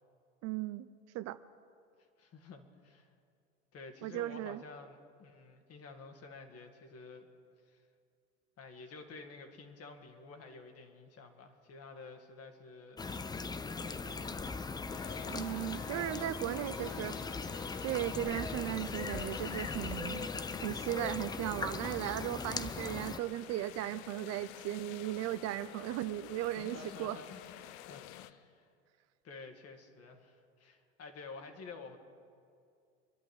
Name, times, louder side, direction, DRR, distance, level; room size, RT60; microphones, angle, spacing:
voice 1, 0.4-0.9 1.1-1.4 4.0-4.6 15.3-17.2 17.8-20.3 20.6-27.2, right 14 dB, 45° right, 13 dB, 0.6 m, -37 dB
voice 2, 2.2-3.1 3.7-7.3 7.7-7.8 8.6-13.1 13.8-14.6 26.4-28.7 29.2-32.0, left 4 dB, 40° left, 5 dB, 2.2 m, -51 dB
sound 1, 13.0-23.2, left 4 dB, 10° left, 0.5 m, -39 dB
sound 2, 14.9-28.3, left 14 dB, 65° left, 0.7 m, -50 dB
24.5 x 11.0 x 4.8 m, 2.3 s
hypercardioid pair, 85°, 36 cm